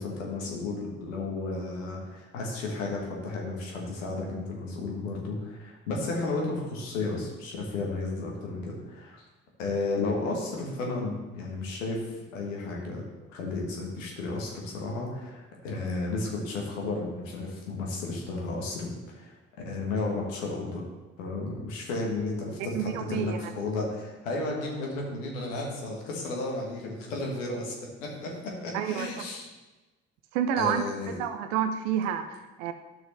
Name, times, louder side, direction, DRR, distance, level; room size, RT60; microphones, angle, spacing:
voice 1, 0.0-9.2 9.6-12.0 12.3-13.0 13.3-19.4 19.6-20.8 21.2-29.5 30.6-31.2, left 3 dB, 80° left, -1 dB, 1.5 m, -33 dB
voice 2, 22.7-23.4 28.7-29.1 30.3-32.7, right 9 dB, 75° right, 9 dB, 0.6 m, -29 dB
10.5 x 6.3 x 3.3 m, 1.1 s
figure-of-eight pair, 40°, 38 cm